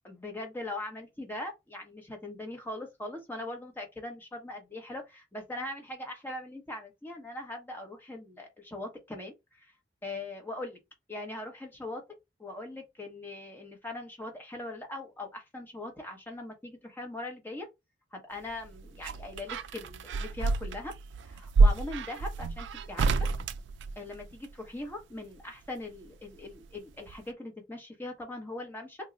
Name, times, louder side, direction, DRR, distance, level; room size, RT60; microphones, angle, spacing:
voice 1, 0.0-9.7 10.0-10.8 11.1-17.7 18.1-20.9 21.2-23.1 24.0-29.0, left 2 dB, 10° left, 0.9 m, -41 dB
sound 1, 18.5-24.5 25.9-26.8 27.1-27.2, right 3 dB, 70° right, 0.3 m, -28 dB
3.0 x 2.1 x 3.7 m
head